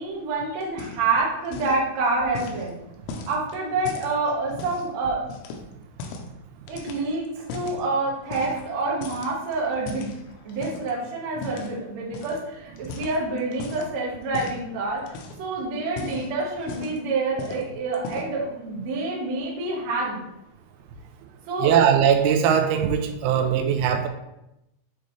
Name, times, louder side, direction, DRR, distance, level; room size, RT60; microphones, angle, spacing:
voice 1, 0.0-2.8 3.3-5.2 6.7-10.2 10.4-20.2 21.5-21.7, right 3 dB, 65° right, -4 dB, 1.7 m, -27 dB
sound 1, 0.6-1.2 1.4-1.8 2.3-4.9 5.3-6.3 6.7-7.8 8.3-8.8 9.0-10.9 11.4-11.7 12.1-12.4 12.8-13.9 14.3-14.6 15.0-15.5 15.8-17.1 17.4-17.7 17.9-18.4, left 4 dB, 80° left, 2.8 m, -38 dB
voice 2, 21.6-24.1, right 8 dB, 85° right, 6 dB, 3.1 m, -20 dB
9.0 x 3.9 x 3.2 m, 0.86 s
omnidirectional pair, 5.6 m